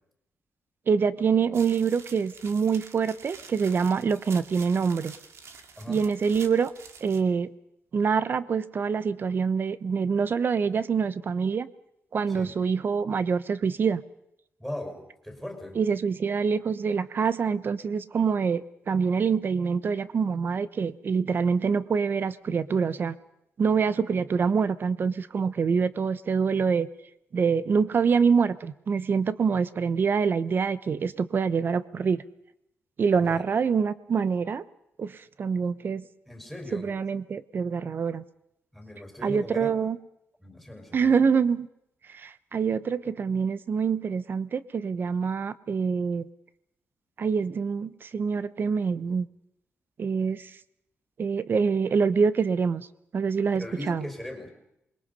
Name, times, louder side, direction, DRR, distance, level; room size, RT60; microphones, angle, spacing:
voice 1, 0.9-5.1 5.9-6.7 7.0-7.5 7.9-11.7 12.1-14.0 15.7-23.2 23.6-26.9 27.3-32.2 33.0-34.6 35.0-36.1 36.7-38.2 39.2-40.0 40.9-41.7 42.1-46.3 47.2-49.3 50.0-50.6 51.2-52.9 53.1-54.1, right 6 dB, 45° right, 15 dB, 0.9 m, -25 dB
sound 1, 1.5-7.2, right 5 dB, 65° right, 2.2 m, -47 dB
voice 2, 14.6-15.8 33.2-33.4 36.3-36.9 38.7-39.7 40.4-41.2 53.6-54.5, left 1 dB, 5° right, 2 dB, 5.1 m, -39 dB
27.5 x 22.0 x 5.5 m, 0.80 s
wide cardioid pair, 145°, 5 cm